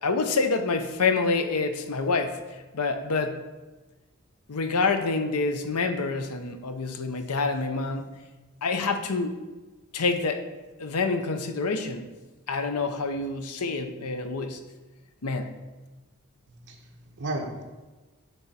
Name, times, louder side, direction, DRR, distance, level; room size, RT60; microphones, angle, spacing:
voice 1, 0.0-3.4 4.5-8.2 8.6-9.4 9.9-10.4 10.8-12.1 12.5-14.6 15.2-15.5, left 4 dB, 90° left, 8 dB, 0.7 m, -27 dB
voice 2, 16.5-17.6, right 2 dB, 50° right, -1 dB, 1.1 m, -35 dB
10.5 x 3.5 x 4.3 m, 1.2 s
head